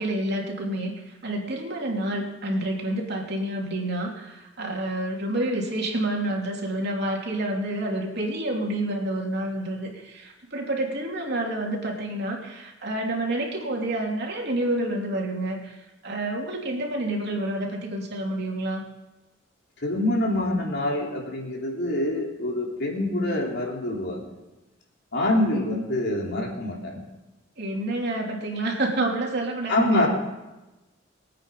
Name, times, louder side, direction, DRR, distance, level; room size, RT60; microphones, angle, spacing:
voice 1, 0.0-15.8 16.0-18.8 27.6-30.1, right 1 dB, 60° right, 0 dB, 3.1 m, -28 dB
voice 2, 19.8-24.3 25.1-27.0 29.7-30.1, left 1 dB, 60° left, -1 dB, 3.3 m, -25 dB
22.0 x 9.1 x 5.5 m, 1.1 s
head